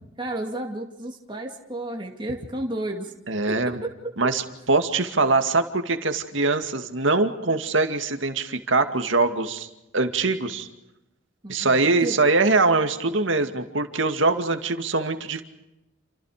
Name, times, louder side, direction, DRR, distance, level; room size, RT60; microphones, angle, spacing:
voice 1, 0.2-3.1 3.5-3.9 11.4-12.2, right 1 dB, 25° right, 1 dB, 2.6 m, -32 dB
voice 2, 3.3-3.8 4.2-4.4 4.7-9.7 9.9-10.7 11.5-15.4, right 3 dB, 70° right, 7 dB, 2.3 m, -22 dB
29.0 x 28.0 x 5.1 m, 0.92 s
head